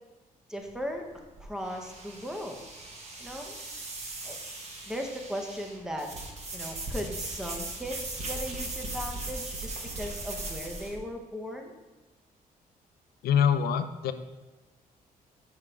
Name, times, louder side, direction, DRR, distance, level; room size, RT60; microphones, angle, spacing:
voice 1, 0.5-1.0 1.4-2.6 3.2-3.6 4.2-4.4 4.9-6.1 6.5-11.7, equal, 5° right, 3 dB, 0.7 m, -37 dB
sound 1, 0.6-11.0, right 2 dB, 45° right, 1.1 m, -38 dB
voice 2, 13.2-14.1, left 8 dB, 90° left, 10 dB, 0.4 m, -24 dB
6.3 x 3.7 x 4.5 m, 1.2 s
cardioid pair, 115°, 16 cm